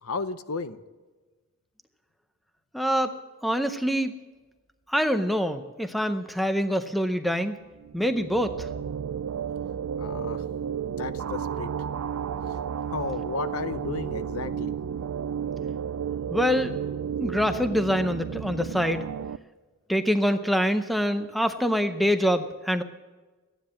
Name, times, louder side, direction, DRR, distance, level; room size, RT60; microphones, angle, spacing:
voice 1, 0.0-0.8 10.0-10.4 11.0-11.7 12.9-14.7, left 4 dB, 75° left, 13 dB, 0.7 m, -33 dB
voice 2, 2.7-3.1 3.4-4.1 4.9-7.6 7.9-8.5 16.3-16.7 17.2-19.1 19.9-22.8, equal, ahead, 9 dB, 0.6 m, -25 dB
sound 1, 7.8-19.4, right 8 dB, 80° right, 0.4 m, -32 dB
14.5 x 10.0 x 7.4 m, 1.3 s
head